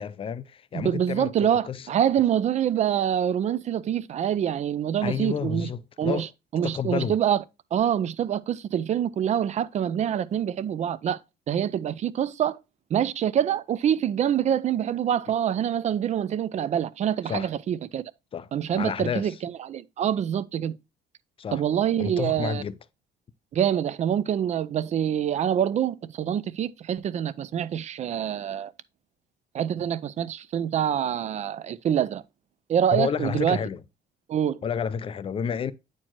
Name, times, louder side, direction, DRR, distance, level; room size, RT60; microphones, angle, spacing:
voice 1, 0.0-1.9 5.0-6.3 6.6-7.2 17.2-17.5 18.3-18.5 18.8-19.4 21.4-21.6 22.0-22.8 32.9-33.8 34.6-35.7, left 7 dB, 35° left, 0.4 m, -30 dB
voice 2, 0.7-5.7 6.0-6.3 6.5-7.4 7.7-11.2 11.5-12.6 12.9-18.0 18.5-20.8 21.5-22.6 23.5-28.7 29.5-32.2 32.7-33.6 34.3-34.6, right 9 dB, 45° right, 0.4 m, -25 dB
8.8 x 4.5 x 2.9 m
cardioid pair, 110°, 17 cm